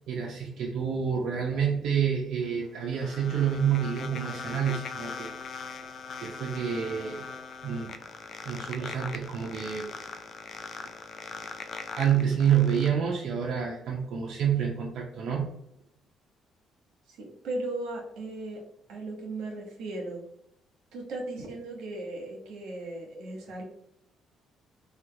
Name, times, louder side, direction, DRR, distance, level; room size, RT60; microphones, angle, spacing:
voice 1, 0.0-5.3 5.8-5.9 6.2-7.2 7.6-7.9 8.4-9.8 12.0-15.5, right 8 dB, 65° right, -3 dB, 0.5 m, -28 dB
sound 1, 2.4-12.9, left 5 dB, 45° left, 0.3 m, -41 dB
voice 2, 17.1-18.6 18.9-20.2 20.9-23.6, right 2 dB, 85° right, -1 dB, 1.0 m, -37 dB
3.2 x 2.3 x 2.7 m, 0.77 s
cardioid pair, 115°, 0 cm